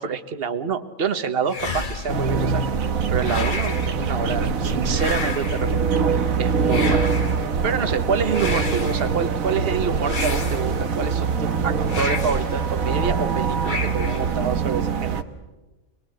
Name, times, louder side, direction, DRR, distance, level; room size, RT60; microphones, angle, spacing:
voice 1, 0.0-2.6 3.1-5.8 6.4-7.1 7.6-15.2, right 6 dB, 45° right, 10 dB, 1.4 m, -27 dB
sound 1, 1.5-2.3 3.2-4.0 4.9-5.7 6.7-7.4 8.3-9.1 10.0-10.9 11.8-12.5 13.6-14.3, left 3 dB, 35° left, 1.5 m, -30 dB
sound 2, 2.1-15.2, right 5 dB, 80° right, 1.6 m, -23 dB
25.5 x 21.5 x 7.9 m, 1.1 s
omnidirectional pair, 1.4 m